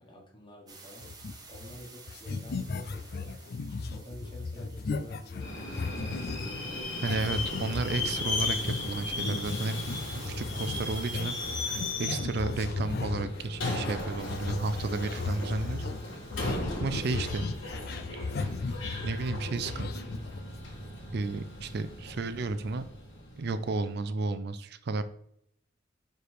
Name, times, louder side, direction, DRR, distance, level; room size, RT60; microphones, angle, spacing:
voice 1, 0.0-3.4 3.9-6.6, equal, 25° left, 0 dB, 1.4 m, -50 dB
sound 1, 0.7-11.9, right 3 dB, 20° right, 1.1 m, -52 dB
sound 2, 1.0-1.8 2.1-6.6 7.0-20.7, left 3 dB, 55° left, 0.4 m, -36 dB
Subway metro underground, 5.4-23.8, left 2 dB, 75° left, 2.1 m, -37 dB
voice 2, 7.0-9.8 10.1-11.4 11.6-15.9 16.8-17.5 19.0-20.0 21.1-22.8 23.4-25.0, right 3 dB, 55° right, 11 dB, 0.4 m, -32 dB
5.0 x 4.5 x 4.8 m, 0.72 s
head